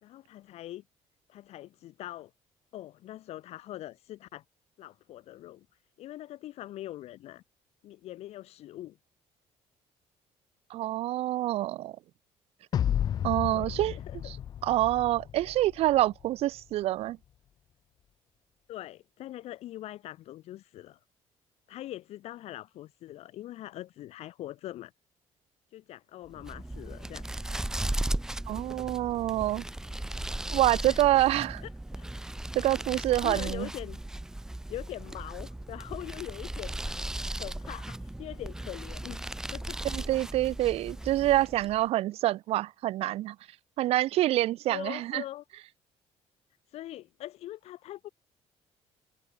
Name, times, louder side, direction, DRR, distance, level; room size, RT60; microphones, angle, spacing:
voice 1, 0.0-0.8 1.3-2.3 2.7-4.4 4.8-5.6 6.0-7.4 7.8-9.0 13.5-14.2 18.7-21.0 21.7-24.9 25.7-27.2 30.8-31.0 31.6-31.7 32.0-32.1 32.9-34.0 34.7-37.0 37.4-39.2 39.5-39.8 44.7-45.4 46.7-48.1, left 14 dB, 65° left, 3.7 m, -42 dB
voice 2, 10.7-12.0 13.2-14.0 14.2-14.4 14.6-17.2 28.5-29.6 30.5-31.6 32.5-33.7 39.8-43.4 43.8-45.2, right 15 dB, 60° right, 0.6 m, -26 dB
sound 1, 12.7-16.0, left 10 dB, 35° left, 0.4 m, -32 dB
sound 2, 26.3-41.8, right 1 dB, 5° right, 0.7 m, -36 dB
cardioid pair, 175°, 11 cm